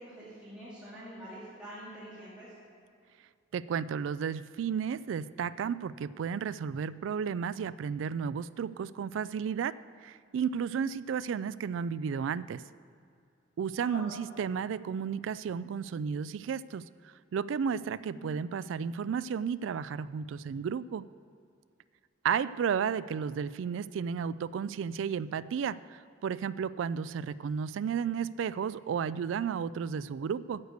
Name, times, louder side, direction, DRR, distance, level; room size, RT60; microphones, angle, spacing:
voice 1, 0.0-2.5 13.8-14.1 18.1-18.3, equal, 5° right, -11 dB, 2.4 m, -45 dB
voice 2, 3.5-9.8 10.0-12.6 13.6-16.8 17.3-21.0 22.2-30.6, right 7 dB, 70° right, 17 dB, 0.3 m, -33 dB
9.7 x 7.9 x 6.6 m, 2.3 s
head